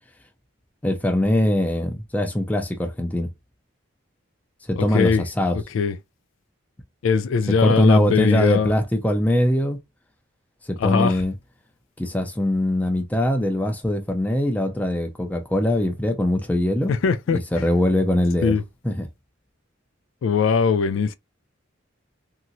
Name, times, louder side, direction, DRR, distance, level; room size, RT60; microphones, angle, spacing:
voice 1, 0.8-3.3 4.7-5.6 7.6-9.8 10.7-11.3 12.0-16.9 17.3-18.6 18.8-19.1, left 1 dB, 10° left, 0.4 m, -22 dB
voice 2, 4.8-5.2 5.7-5.9 7.0-8.7 10.8-11.1 16.9-17.4 18.4-18.6 20.2-21.1, left 5 dB, 80° left, 0.3 m, -20 dB
2.9 x 2.8 x 2.6 m
head